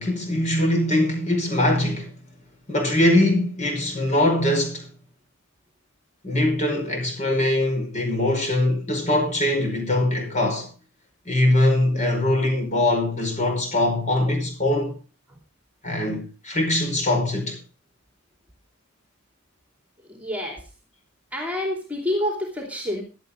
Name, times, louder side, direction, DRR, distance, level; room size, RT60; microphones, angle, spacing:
voice 1, 0.0-2.1 2.7-4.9 6.2-10.7 11.2-15.0 15.8-17.6, left 1 dB, 35° left, 5.1 m, -22 dB
voice 2, 20.2-20.6 21.3-23.0, left 1 dB, 5° right, 2.8 m, -27 dB
16.5 x 11.5 x 3.7 m
head